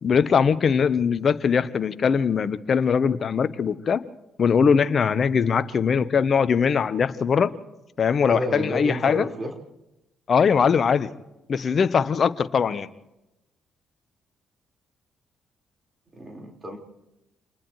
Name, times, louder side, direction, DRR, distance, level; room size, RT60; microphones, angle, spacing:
voice 1, 0.0-4.0 4.4-7.5 8.0-9.3 10.3-11.1 11.5-12.9, left 6 dB, 50° left, 13 dB, 1.0 m, -21 dB
voice 2, 8.2-9.5 16.1-16.8, equal, 30° right, 1 dB, 4.8 m, -31 dB
30.0 x 27.5 x 3.2 m, 0.95 s
hypercardioid pair, 45°, 0 cm